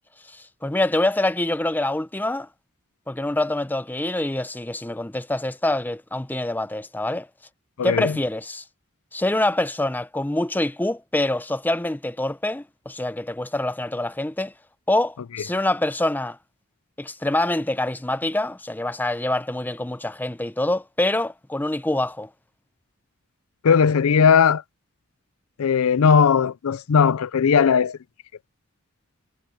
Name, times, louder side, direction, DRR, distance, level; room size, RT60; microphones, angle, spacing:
voice 1, 0.3-2.5 3.1-7.3 7.8-8.6 9.1-14.5 14.9-16.4 17.0-22.3, left 1 dB, 10° left, 0.6 m, -25 dB
voice 2, 7.8-8.1 23.6-24.6 25.6-28.0, left 6 dB, 85° left, 0.5 m, -18 dB
head